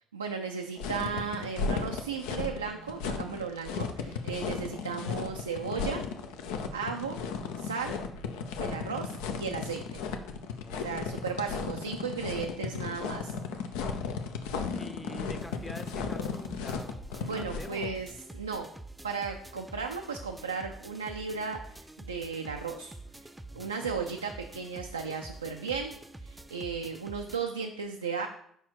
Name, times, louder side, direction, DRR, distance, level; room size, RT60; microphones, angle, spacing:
voice 1, 0.1-6.0 6.7-7.2 7.6-8.0 8.6-10.0 10.7-13.3 13.8-13.9 17.2-18.7 19.0-23.3 23.6-25.9 26.2-28.3, right 5 dB, 90° right, 3 dB, 0.3 m, -35 dB
sound 1, 0.8-17.9, left 5 dB, 70° left, 0.5 m, -35 dB
sound 2, 1.7-12.0, right 5 dB, 90° left, 2.0 m, -57 dB
voice 2, 10.6-11.4 14.7-17.0 17.3-18.2 23.5-23.9, left 2 dB, 15° left, 8 dB, 0.7 m, -46 dB
sound 3, 15.4-27.4, right 2 dB, 10° right, 0.4 m, -47 dB
4.8 x 4.3 x 4.6 m, 0.68 s
figure-of-eight pair, 55°, 0 cm